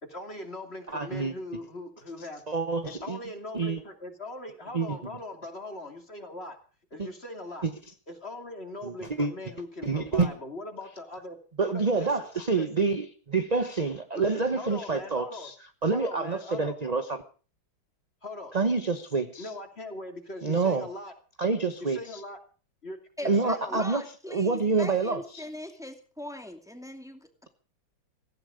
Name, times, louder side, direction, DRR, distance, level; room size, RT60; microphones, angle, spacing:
voice 1, 0.0-2.4 2.8-6.6 6.9-7.7 8.1-11.4 11.7-12.3 12.5-12.7 14.1-15.5 15.9-16.9 18.2-18.5 19.4-21.1 21.8-22.4 22.8-24.0, left 1 dB, 30° left, 5 dB, 3.0 m, -40 dB
voice 2, 0.9-1.3 2.5-3.2 3.5-3.8 4.7-4.9 7.0-7.1 7.6-7.7 8.8-9.3 9.8-10.3 11.6-15.5 15.8-17.2 18.5-19.5 20.4-20.9 21.4-22.2 23.2-24.0 24.3-25.4, right 4 dB, 30° right, 9 dB, 0.9 m, -27 dB
voice 3, 23.2-27.3, left 1 dB, ahead, 6 dB, 2.3 m, -40 dB
17.5 x 16.0 x 5.0 m, 0.39 s
omnidirectional pair, 2.1 m